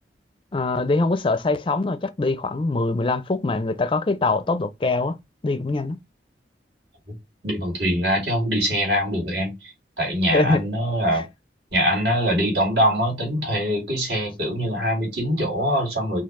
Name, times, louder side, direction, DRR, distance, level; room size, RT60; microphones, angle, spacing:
voice 1, 0.5-5.2 5.4-6.0 10.3-10.6 11.1-11.2, left 3 dB, 30° left, 0.4 m, -23 dB
voice 2, 7.4-9.7 10.0-11.2 11.7-16.2, equal, 75° right, 2.5 m, -23 dB
4.5 x 2.4 x 3.6 m
head